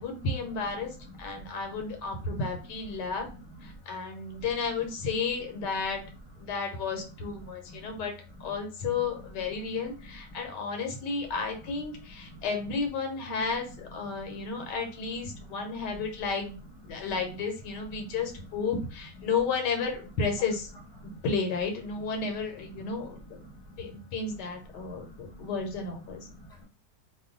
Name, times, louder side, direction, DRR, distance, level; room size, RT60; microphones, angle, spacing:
voice 1, 0.0-3.3 3.6-6.0 6.4-8.1 8.4-16.6 16.8-20.7 21.2-23.4 23.8-26.3, left 4 dB, 80° left, 3 dB, 1.4 m, -32 dB
voice 2, 1.0-2.2 3.0-3.7 4.3-4.4 7.4-8.0 8.4-8.6 8.9-9.2 9.5-10.2 12.2-12.4 14.0-14.7 15.3-15.8 16.9-17.1 18.0-18.1 21.0-21.2 22.8-24.0 24.7-25.6 26.1-26.7, equal, 5° left, -3 dB, 0.8 m, -49 dB
3.0 x 2.2 x 3.7 m, 0.36 s
omnidirectional pair, 1.8 m